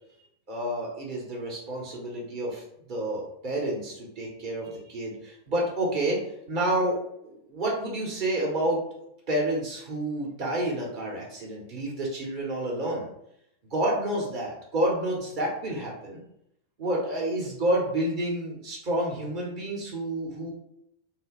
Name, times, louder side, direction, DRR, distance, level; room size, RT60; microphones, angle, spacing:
voice 1, 0.5-2.6 2.9-6.2 6.5-8.8 9.3-13.1 13.7-16.2 16.8-20.5, right 1 dB, 45° right, -2 dB, 1.0 m, -29 dB
3.2 x 2.1 x 3.0 m, 0.75 s
figure-of-eight pair, 90°, 0 cm